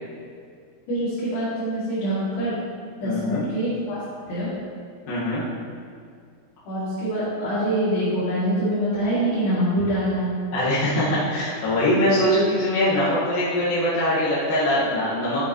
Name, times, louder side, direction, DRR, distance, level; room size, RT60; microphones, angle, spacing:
voice 1, 0.9-2.6 3.0-4.0 4.3-4.5 6.6-10.4, right 1 dB, 75° left, -12 dB, 4.7 m, -24 dB
voice 2, 3.0-3.4 5.1-5.4 10.5-15.5, left 1 dB, 60° left, -11 dB, 3.2 m, -22 dB
12.5 x 7.0 x 3.2 m, 2.2 s
omnidirectional pair, 5.0 m